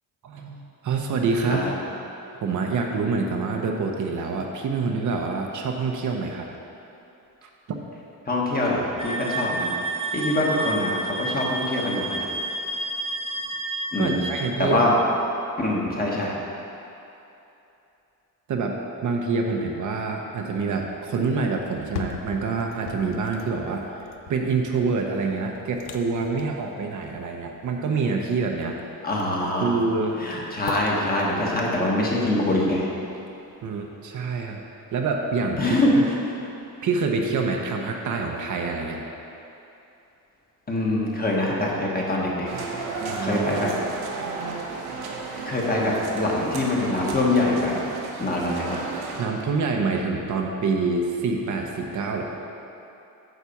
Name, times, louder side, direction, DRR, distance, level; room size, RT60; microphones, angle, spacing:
voice 1, 0.2-1.7 2.4-6.5 7.4-7.5 14.0-14.8 18.5-18.8 19.0-23.9 24.3-28.8 29.6-30.2 33.6-34.6 34.9-35.8 36.8-39.0 43.1-43.7 49.2-52.3, right 4 dB, 55° right, 2 dB, 0.8 m, -26 dB
voice 2, 8.2-9.7 9.9-12.3 13.9-14.2 14.6-14.9 15.6-16.3 29.0-29.7 30.2-32.9 35.6-36.1 40.7-43.7 45.5-47.7 48.2-48.8, left 1 dB, 25° left, -3 dB, 1.3 m, -24 dB
sound 1, 9.0-14.5, right 1 dB, 15° right, 0.6 m, -30 dB
sound 2, 21.7-33.7 34.1-34.2, left 8 dB, 80° left, 0.7 m, -41 dB
sound 3, 42.4-49.2, right 4 dB, 85° right, 1.2 m, -33 dB
9.3 x 4.1 x 7.0 m, 2.9 s
cardioid pair, 165°, 37 cm